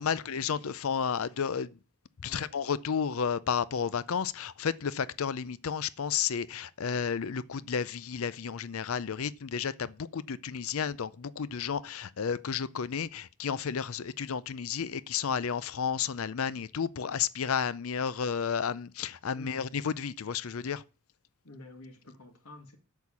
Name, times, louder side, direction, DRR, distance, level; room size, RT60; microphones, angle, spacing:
voice 1, 0.0-1.8 2.2-20.8, left 7 dB, 70° left, 0.5 m, -32 dB
voice 2, 2.2-2.6 19.3-19.8 21.4-22.8, left 2 dB, 90° left, 2.4 m, -49 dB
8.3 x 6.5 x 7.2 m
head